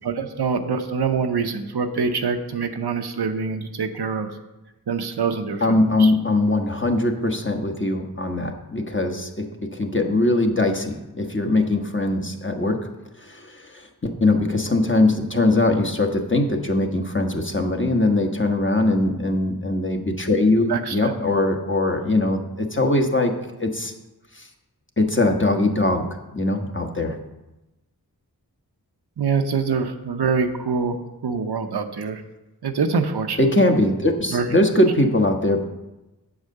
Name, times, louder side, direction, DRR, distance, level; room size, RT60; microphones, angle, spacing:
voice 1, 0.0-4.3 4.9-6.1 20.7-21.1 29.2-31.0 31.2-32.2 32.6-33.4 34.3-34.5, right 5 dB, 80° right, 6 dB, 0.8 m, -25 dB
voice 2, 5.6-12.9 13.2-23.3 23.6-23.9 24.4-24.5 25.0-26.0 26.3-27.2 33.4-35.6, left 2 dB, 30° left, 3 dB, 1.2 m, -21 dB
8.1 x 4.8 x 6.5 m, 1.0 s
wide cardioid pair, 45°, 38 cm